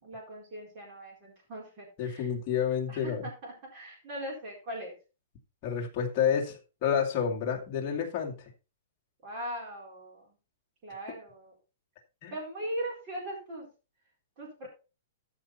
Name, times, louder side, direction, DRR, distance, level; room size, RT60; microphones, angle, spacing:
voice 1, 0.0-2.3 2.9-4.9 9.2-10.3 10.8-11.5 12.3-13.7 14.4-14.7, right 1 dB, 25° right, -3 dB, 4.3 m, -40 dB
voice 2, 2.0-3.2 5.6-8.3 12.2-12.3, left 8 dB, 25° left, 0 dB, 2.3 m, -29 dB
13.5 x 5.7 x 4.2 m, 0.31 s
hypercardioid pair, 175°, 0 cm